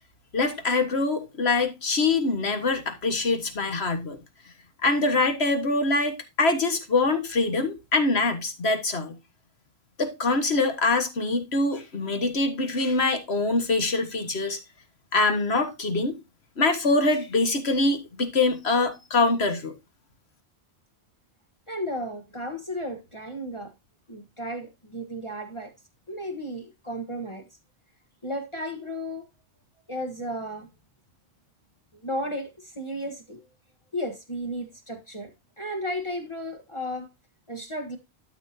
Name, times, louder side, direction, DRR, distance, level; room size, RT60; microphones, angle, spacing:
voice 1, 0.3-4.2 4.8-9.1 10.0-14.6 15.1-16.2 16.6-19.7, left 3 dB, 75° left, 1.8 m, -24 dB
voice 2, 21.7-23.7 24.1-25.7 26.1-27.5 28.2-29.3 29.9-30.7 32.0-33.4 33.9-35.3 35.6-37.1 37.5-38.0, equal, 30° left, 1.4 m, -34 dB
12.5 x 5.9 x 2.8 m
omnidirectional pair, 1.1 m